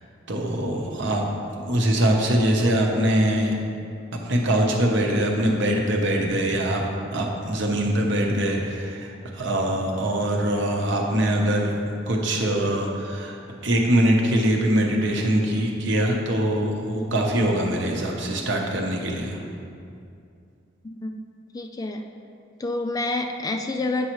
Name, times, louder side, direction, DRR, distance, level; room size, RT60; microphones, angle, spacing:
voice 1, 0.3-3.5 4.1-6.8 7.1-19.4, right 1 dB, 70° right, 0 dB, 0.9 m, -23 dB
voice 2, 20.8-21.2 21.5-22.0 22.6-24.1, left 2 dB, 20° left, 5 dB, 0.3 m, -28 dB
8.3 x 5.5 x 3.0 m, 2.5 s
head